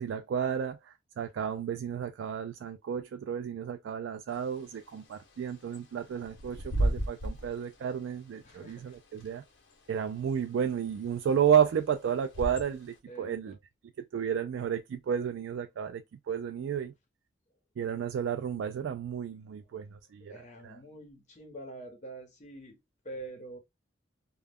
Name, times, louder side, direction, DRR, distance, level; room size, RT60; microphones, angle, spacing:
voice 1, 0.0-9.4 9.9-13.6 14.1-16.9 17.8-20.3 20.6-20.8, right 8 dB, 90° right, 0.3 m, -32 dB
Bird / Wind, 4.3-13.0, right 1 dB, 75° left, 0.7 m, -37 dB
voice 2, 8.4-8.9 13.1-13.6 20.3-22.8 23.0-23.6, right 2 dB, 40° left, 0.8 m, -45 dB
2.3 x 2.1 x 3.4 m
head